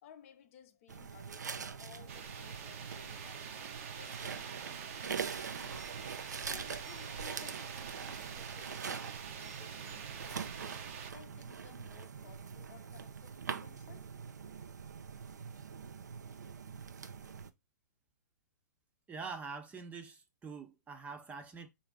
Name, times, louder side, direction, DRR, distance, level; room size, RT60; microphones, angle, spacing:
voice 1, 0.0-3.6 3.9-5.9 6.4-14.1, left 9 dB, 50° left, 0.7 m, -59 dB
sound 1, 0.9-17.5, right 6 dB, 80° right, 0.6 m, -43 dB
sound 2, 2.1-11.1, right 7 dB, 50° right, 0.7 m, -46 dB
voice 2, 19.1-21.7, right 5 dB, 15° right, 0.6 m, -45 dB
4.0 x 2.7 x 4.5 m
hypercardioid pair, 125°, 9 cm